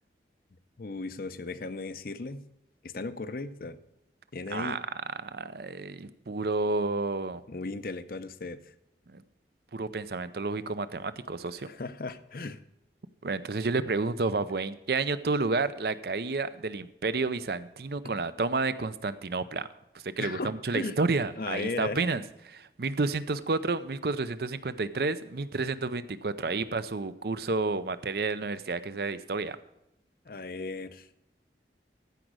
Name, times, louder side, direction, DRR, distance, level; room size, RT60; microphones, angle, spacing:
voice 1, 0.8-2.4 2.8-3.8 4.3-4.8 7.5-8.7 11.7-12.6 18.0-18.2 20.2-21.0 21.4-22.0 30.3-31.1, left 3 dB, 55° left, 13 dB, 0.6 m, -36 dB
voice 2, 4.5-4.8 5.2-7.4 9.1-9.2 9.7-11.7 13.2-19.7 20.0-29.6, right 3 dB, 60° right, 14 dB, 0.6 m, -30 dB
15.0 x 5.2 x 6.2 m, 0.85 s
head